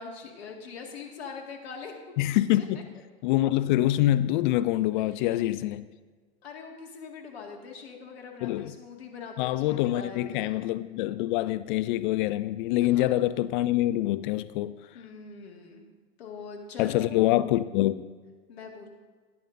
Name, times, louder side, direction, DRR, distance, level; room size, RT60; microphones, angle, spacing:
voice 1, 0.0-2.1 2.6-2.8 4.9-5.4 5.8-5.9 6.4-10.6 12.9-13.1 14.9-15.9 16.2-17.1 18.5-18.9, left 5 dB, 70° left, 2.1 m, -42 dB
voice 2, 2.2-2.8 3.2-5.8 8.4-8.7 9.4-14.8 16.8-18.1, left 15 dB, 50° left, 0.4 m, -25 dB
15.0 x 10.5 x 2.7 m
figure-of-eight pair, 85°, 32 cm